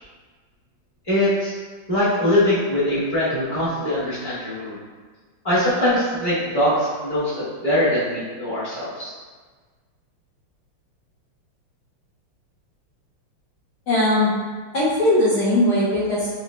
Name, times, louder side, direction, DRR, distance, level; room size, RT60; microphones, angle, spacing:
voice 1, 1.1-1.5 1.9-4.8 5.4-9.1, left 1 dB, 20° left, -12 dB, 0.6 m, -22 dB
voice 2, 13.9-14.3 14.7-16.3, left 1 dB, 70° left, -9 dB, 1.0 m, -19 dB
3.7 x 3.0 x 2.2 m, 1.4 s
omnidirectional pair, 2.4 m